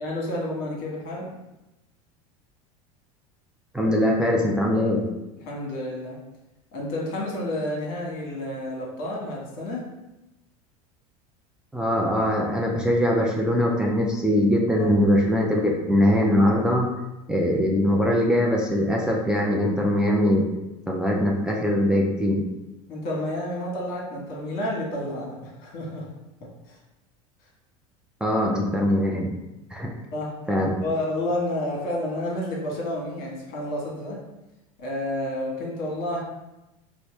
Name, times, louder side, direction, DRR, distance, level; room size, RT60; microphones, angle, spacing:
voice 1, 0.0-1.4 5.4-6.2 6.7-9.9 14.8-14.9 22.9-26.1 26.4-26.8 30.1-30.3 30.8-34.2 34.8-36.2, left 1 dB, 55° left, -2 dB, 1.2 m, -30 dB
voice 2, 3.7-5.1 11.7-16.9 17.3-20.5 20.9-22.4 28.2-29.3 29.7-29.9 30.5-30.8, left 1 dB, 5° right, -2 dB, 0.4 m, -22 dB
4.0 x 2.1 x 3.1 m, 0.99 s
hypercardioid pair, 95°, 18 cm